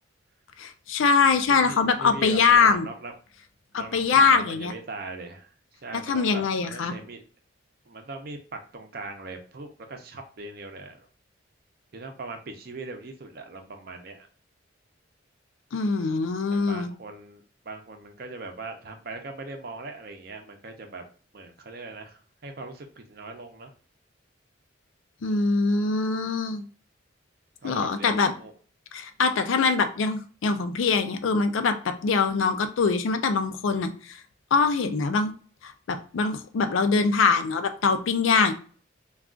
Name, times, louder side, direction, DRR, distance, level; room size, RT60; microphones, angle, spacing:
voice 1, 0.6-2.9 3.7-4.7 5.9-6.9 15.7-16.9 25.2-26.6 27.6-28.3 28.9-34.2 34.5-35.3 35.6-38.5, left 4 dB, 80° left, 9 dB, 0.4 m, -23 dB
voice 2, 1.5-3.1 3.7-7.2 7.9-11.1 11.9-14.3 16.5-21.0 21.3-23.7 27.6-28.5, right 3 dB, 50° right, 5 dB, 0.5 m, -40 dB
2.3 x 2.3 x 3.7 m, 0.41 s
head